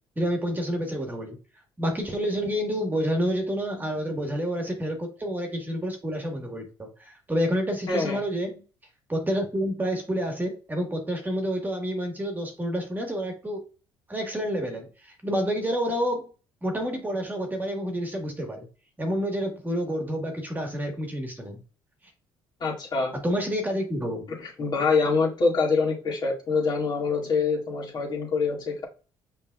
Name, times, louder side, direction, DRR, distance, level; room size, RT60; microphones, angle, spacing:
voice 1, 0.1-1.4 1.8-8.6 9.1-13.6 14.1-16.3 16.6-18.7 19.0-21.6 23.1-24.2, equal, 20° right, 3 dB, 1.6 m, -29 dB
voice 2, 7.9-8.2 22.6-23.1 24.4-28.9, left 4 dB, 45° left, -1 dB, 2.1 m, -25 dB
5.4 x 3.4 x 2.4 m, 0.34 s
supercardioid pair, 70°, 10 cm